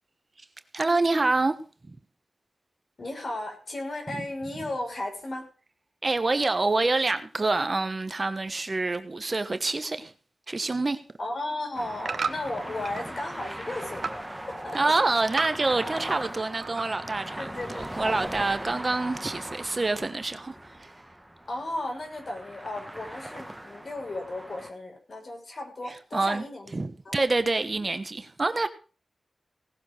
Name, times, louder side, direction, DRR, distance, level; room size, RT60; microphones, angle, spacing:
voice 1, 0.7-1.6 1.8-2.0 4.1-4.2 6.0-10.1 10.5-11.0 14.7-17.5 17.8-20.9 26.1-26.4 26.7-28.7, right 3 dB, 40° right, 1.2 m, -26 dB
voice 2, 3.0-5.5 11.2-14.9 17.4-18.5 21.5-26.7 27.0-27.1, left 2 dB, 55° left, 6.1 m, -35 dB
sound 1, 11.3-13.1 13.5-14.2 14.6-16.3 16.6-17.2 17.6-17.7, right 5 dB, 75° right, 1.2 m, -35 dB
sound 2, 11.7-24.7, right 1 dB, 10° right, 1.3 m, -39 dB
18.0 x 7.0 x 6.5 m
wide cardioid pair, 90°, 0 cm